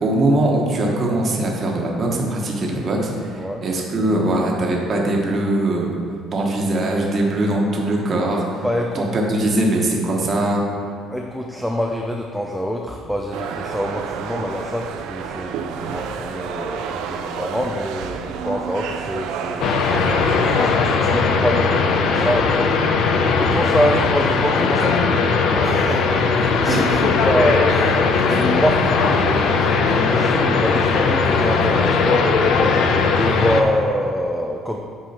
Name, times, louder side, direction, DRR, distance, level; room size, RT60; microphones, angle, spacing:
voice 1, 0.0-5.9 6.3-8.6 8.9-10.6 26.7-26.8, right 1 dB, 35° right, -1 dB, 1.2 m, -21 dB
voice 2, 8.6-9.1 11.1-22.8 23.4-25.2 25.6-32.7 33.1-34.8, equal, 5° left, 1 dB, 0.4 m, -26 dB
sound 1, 13.3-20.7, right 7 dB, 80° right, 0.4 m, -30 dB
sound 2, 19.6-33.6, left 4 dB, 60° left, 0.6 m, -18 dB
8.6 x 4.7 x 4.4 m, 2.2 s
cardioid pair, 145°, 0 cm